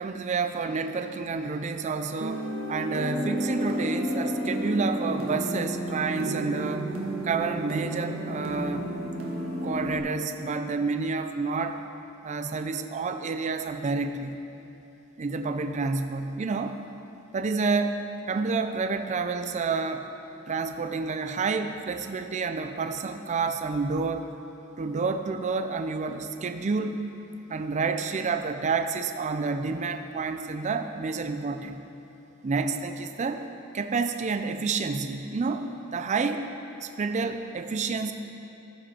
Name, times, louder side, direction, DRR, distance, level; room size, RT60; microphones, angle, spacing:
voice 1, 0.0-6.9 7.2-8.9 9.6-11.8 12.2-14.4 15.2-16.8 17.3-20.1 20.5-24.3 24.8-27.0 27.5-31.8 32.4-33.4 33.7-36.5 36.8-38.1, right 4 dB, 35° right, 7 dB, 0.4 m, -29 dB
sound 1, 2.2-10.0, right 1 dB, 80° right, 1.5 m, -31 dB
15.0 x 5.4 x 4.3 m, 3.0 s
head